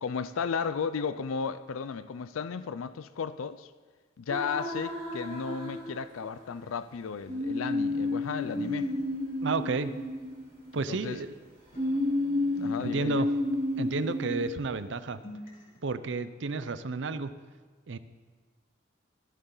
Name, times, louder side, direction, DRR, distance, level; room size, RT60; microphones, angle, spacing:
voice 1, 0.0-3.7 4.2-8.9 10.7-11.2 12.6-13.3, left 6 dB, 90° left, 0.4 m, -34 dB
sound 1, 4.3-6.4 7.3-11.0 11.8-14.5, left 2 dB, 30° right, 3.5 m, -31 dB
sound 2, 7.8-11.4 11.7-14.5 14.8-15.8, equal, 45° left, 3.0 m, -51 dB
voice 2, 9.4-9.9 10.7-11.3 12.8-13.3 13.8-15.2 15.8-17.3 17.9-18.0, right 3 dB, 60° right, 0.6 m, -31 dB
21.5 x 8.1 x 3.9 m
head